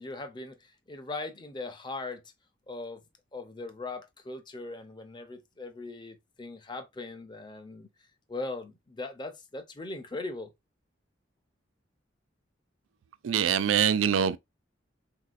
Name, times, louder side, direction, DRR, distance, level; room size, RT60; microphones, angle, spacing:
voice 1, 0.0-2.2 2.7-3.0 3.3-7.9 8.3-10.5, left 3 dB, 25° left, 0.6 m, -39 dB
voice 2, 13.2-14.4, right 8 dB, 85° right, 0.4 m, -24 dB
3.8 x 2.7 x 2.4 m
head